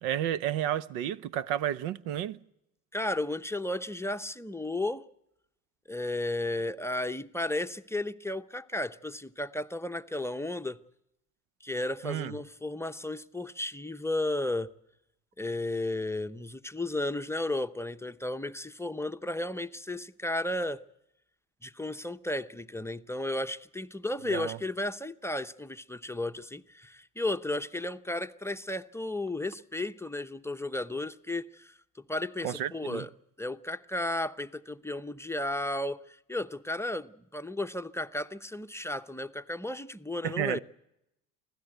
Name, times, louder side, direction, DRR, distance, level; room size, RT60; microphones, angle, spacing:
voice 1, 0.0-2.4 12.0-12.3 24.3-24.6 32.4-33.1 40.2-40.6, right 11 dB, 75° right, 0.8 m, -31 dB
voice 2, 2.9-5.0 5.9-10.8 11.6-14.7 15.4-20.8 21.6-31.7 32.1-33.1 33.4-40.6, left 1 dB, 5° left, 0.7 m, -34 dB
24.5 x 16.0 x 8.0 m
hypercardioid pair, 70°, 39 cm